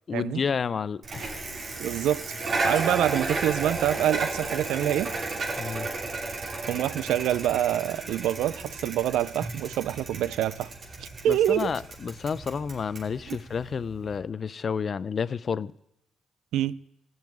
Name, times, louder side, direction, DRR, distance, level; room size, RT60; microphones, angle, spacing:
voice 1, 0.1-1.4 5.6-5.9 11.3-15.7, left 6 dB, 45° left, 0.4 m, -30 dB
Bicycle, 1.0-14.2, right 3 dB, 55° right, 3.1 m, -33 dB
voice 2, 1.8-5.1 6.7-10.7 11.0-11.7 13.3-13.4 16.5-16.8, right 11 dB, 85° right, 0.4 m, -26 dB
14.5 x 5.5 x 9.3 m
cardioid pair, 90°, 0 cm